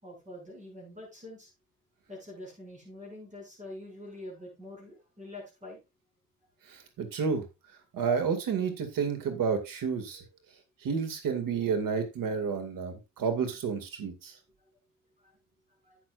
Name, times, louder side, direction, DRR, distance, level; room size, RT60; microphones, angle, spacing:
voice 1, 0.0-1.5 2.1-5.8 15.8-16.0, left 1 dB, 20° right, 0 dB, 6.5 m, -45 dB
voice 2, 6.7-7.4 7.9-10.2 10.8-14.3, right 6 dB, 70° right, 8 dB, 2.3 m, -30 dB
12.0 x 8.7 x 2.5 m, 0.25 s
cardioid pair, 140°, 34 cm